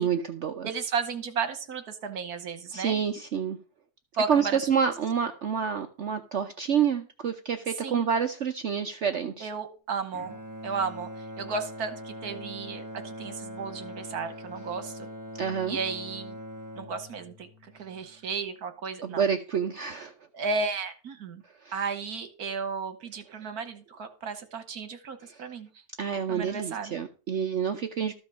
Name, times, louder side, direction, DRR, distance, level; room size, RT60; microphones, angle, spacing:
voice 1, 0.0-0.7 2.7-3.6 4.3-9.5 15.4-15.8 19.0-20.1 21.6-21.7 26.0-28.1, right 7 dB, 55° right, 6 dB, 0.9 m, -28 dB
voice 2, 0.6-3.0 4.1-4.6 7.8-8.1 9.4-10.4 10.6-15.1 15.7-16.4 16.7-19.3 20.3-21.4 21.7-25.7 26.3-27.0, right 5 dB, 75° right, 10 dB, 1.7 m, -34 dB
Bowed string instrument, 10.1-18.4, equal, 15° right, 1.1 m, -42 dB
13.5 x 5.2 x 6.1 m, 0.35 s
omnidirectional pair, 1.6 m